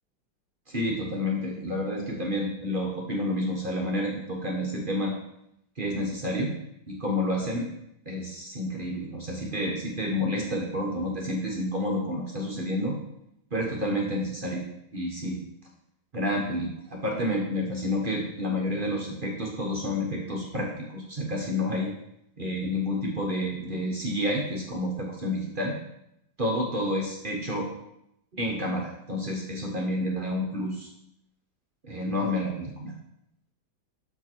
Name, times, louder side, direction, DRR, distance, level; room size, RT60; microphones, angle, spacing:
voice 1, 0.7-5.1 5.8-6.5 6.9-7.7 8.1-12.9 13.5-14.6 14.9-15.4 16.1-21.9 22.4-25.8 26.4-27.7 28.3-30.9 31.8-32.9, left 1 dB, 50° right, -1 dB, 0.6 m, -29 dB
6.6 x 4.6 x 4.4 m, 0.80 s
omnidirectional pair, 2.2 m